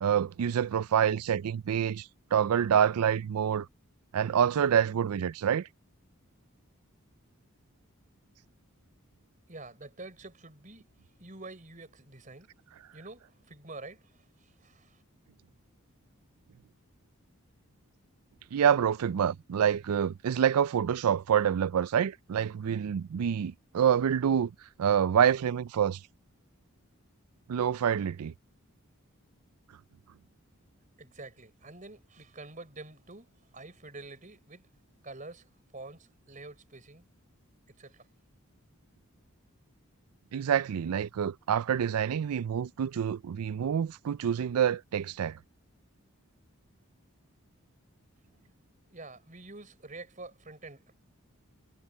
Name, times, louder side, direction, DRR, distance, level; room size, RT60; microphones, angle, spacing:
voice 1, 0.0-3.7 4.1-5.7 18.5-24.5 24.8-26.0 27.5-28.3 40.3-45.4, right 8 dB, 90° right, 0.4 m, -27 dB
voice 2, 9.5-10.9 11.2-12.5 12.9-15.0 31.0-34.7 35.0-35.5 35.7-37.0 37.8-38.0 48.9-50.9, right 2 dB, 35° right, 4.0 m, -47 dB
head